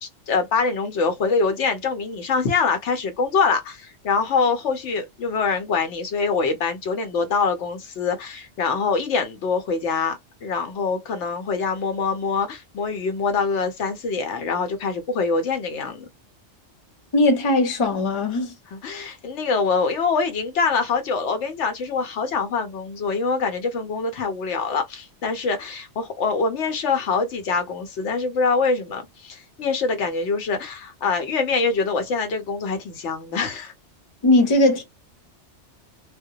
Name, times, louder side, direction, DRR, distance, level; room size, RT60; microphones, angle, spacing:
voice 1, 0.0-16.1 18.7-33.7, left 4 dB, 80° left, 1.0 m, -24 dB
voice 2, 17.1-18.5 34.2-34.8, left 2 dB, 30° left, 0.7 m, -19 dB
2.2 x 2.1 x 2.6 m
omnidirectional pair, 1.2 m